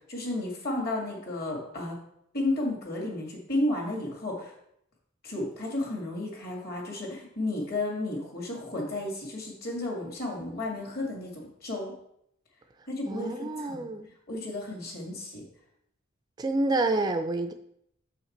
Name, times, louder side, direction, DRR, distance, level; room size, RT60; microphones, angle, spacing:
voice 1, 0.1-2.0 2.3-4.5 5.2-11.9 12.9-13.9 14.3-15.4, left 2 dB, 50° left, 0 dB, 2.1 m, -32 dB
voice 2, 13.1-14.1 16.4-17.5, right 2 dB, 20° right, 7 dB, 0.3 m, -28 dB
6.4 x 5.7 x 4.2 m, 0.75 s
head